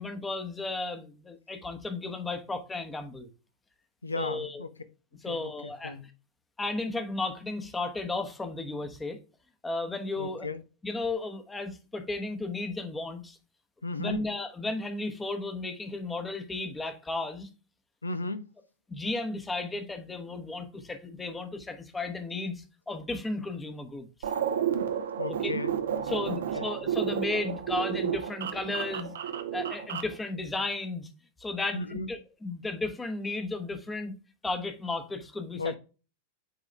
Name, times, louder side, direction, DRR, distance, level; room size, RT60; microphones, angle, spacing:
voice 1, 0.0-3.3 4.2-4.6 5.2-6.0 6.6-9.2 9.6-10.5 10.8-13.4 14.0-17.5 18.9-24.3 25.3-25.5 26.1-29.1 29.5-31.1 31.4-34.1 34.4-35.8, left 2 dB, 10° left, 1.0 m, -34 dB
voice 2, 4.0-4.7 5.3-6.1 10.2-10.6 13.8-14.2 18.0-18.5 25.2-25.7 26.3-26.7 31.7-32.1 35.6-35.8, left 3 dB, 80° left, 0.6 m, -35 dB
sound 1, 24.2-30.2, right 9 dB, 60° right, 0.7 m, -31 dB
8.8 x 3.7 x 3.2 m
figure-of-eight pair, 90°, 0 cm